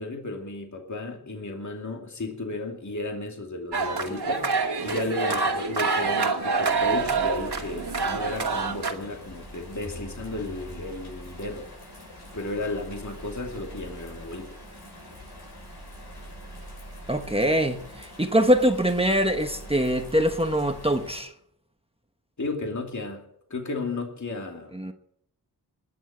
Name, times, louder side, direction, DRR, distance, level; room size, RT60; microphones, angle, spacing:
voice 1, 0.0-4.5 4.8-11.7 12.3-14.5 22.4-23.2 23.5-24.7, left 2 dB, 45° left, 2.6 m, -34 dB
sound 1, 3.7-8.9, right 4 dB, 75° right, 2.4 m, -26 dB
Bird vocalization bird call bird song / Rain, 6.6-21.2, equal, 75° left, 7.2 m, -43 dB
voice 2, 17.1-21.3 24.7-24.9, equal, 15° right, 1.2 m, -23 dB
21.0 x 7.3 x 7.8 m
wide cardioid pair, 70°, 40 cm